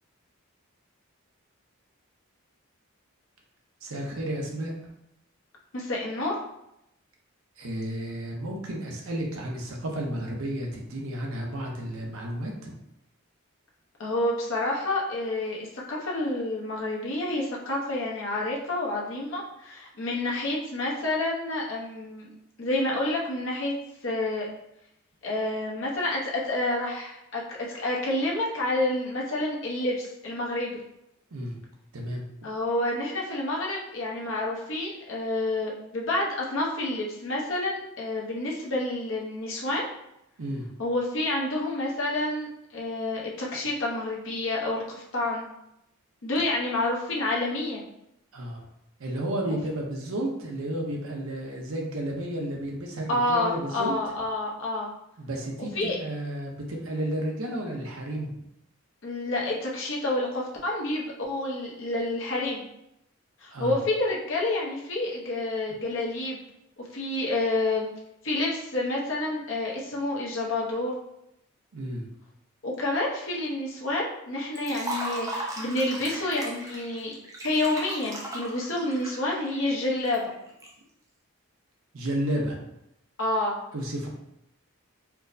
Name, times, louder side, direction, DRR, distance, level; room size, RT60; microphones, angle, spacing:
voice 1, 3.8-4.7 7.6-12.8 31.3-31.6 31.9-32.2 40.4-40.7 48.3-48.7 49.0-54.0 55.2-58.3 63.5-63.8 71.7-72.0 81.9-82.6 83.7-84.1, right 1 dB, 70° right, 0 dB, 0.7 m, -32 dB
voice 2, 5.7-6.4 14.0-22.3 22.6-23.7 24.0-24.5 25.2-30.8 32.4-39.9 40.8-45.4 46.2-47.9 53.1-54.9 55.7-56.0 59.0-62.7 63.4-66.4 66.8-67.9 68.2-70.9 72.6-77.1 77.4-80.3 83.2-83.6, left 2 dB, 60° left, -3 dB, 0.7 m, -29 dB
Liquid, 74.6-80.7, right 1 dB, 15° right, 0.4 m, -37 dB
4.5 x 2.0 x 2.6 m, 0.82 s
head